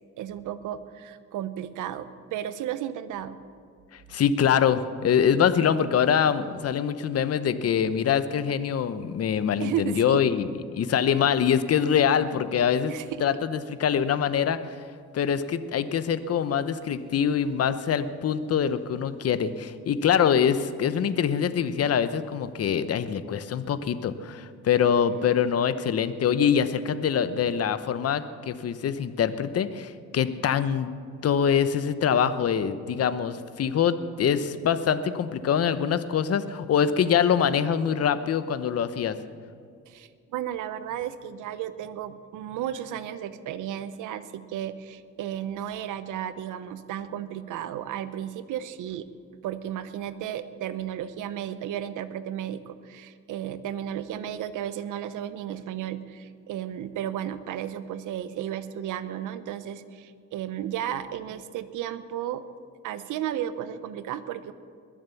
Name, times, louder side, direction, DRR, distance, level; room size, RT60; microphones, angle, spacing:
voice 1, 0.2-3.4 9.6-10.2 12.9-13.2 39.9-49.1 49.4-62.4 62.8-64.5, right 10 dB, 85° right, 13 dB, 0.8 m, -34 dB
voice 2, 3.9-12.9 13.2-14.6 15.1-30.9 31.2-39.2, left 8 dB, 55° left, 13 dB, 0.9 m, -24 dB
21.5 x 7.4 x 7.1 m, 2.3 s
cardioid pair, 90°, 30 cm